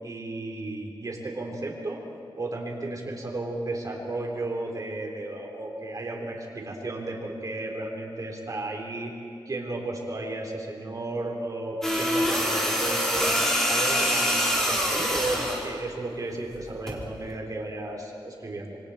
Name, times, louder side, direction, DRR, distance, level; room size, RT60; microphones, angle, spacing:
voice 1, 0.0-2.0 2.4-9.1 9.5-13.3 13.7-18.8, right 2 dB, 40° right, 0 dB, 3.9 m, -34 dB
sound 1, 11.8-15.7 16.9-17.1, equal, 5° left, 3.5 m, -25 dB
27.5 x 24.5 x 4.4 m, 2.6 s
wide cardioid pair, 145°, 9 cm